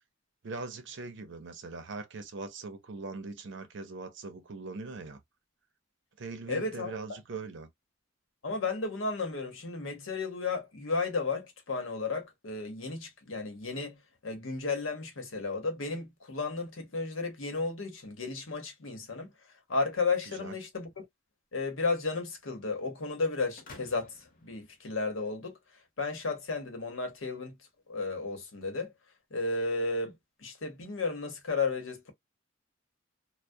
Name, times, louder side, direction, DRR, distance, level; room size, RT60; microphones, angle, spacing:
voice 1, 0.4-5.2 6.2-7.7 20.3-20.6, right 3 dB, 65° right, 0.6 m, -41 dB
voice 2, 6.5-7.2 8.4-19.3 19.7-21.0 21.5-25.6 26.0-27.6 27.9-28.9 29.3-32.1, left 3 dB, 85° left, 0.9 m, -33 dB
sound 1, 23.6-25.5, left 3 dB, 45° left, 0.7 m, -53 dB
2.3 x 2.1 x 2.6 m
head